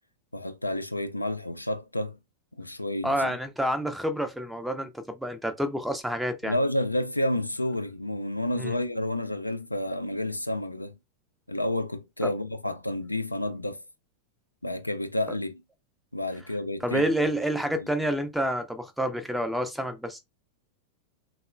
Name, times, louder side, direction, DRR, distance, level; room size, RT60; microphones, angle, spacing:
voice 1, 0.3-2.2 2.6-3.3 6.4-11.0 11.5-13.8 14.6-15.6 16.1-17.1 17.7-17.9, left 1 dB, 85° left, 0.3 m, -30 dB
voice 2, 3.0-6.6 8.6-8.8 12.2-12.3 16.8-20.2, equal, ahead, 0.5 m, -28 dB
3.5 x 2.0 x 2.4 m
figure-of-eight pair, 90°, 0 cm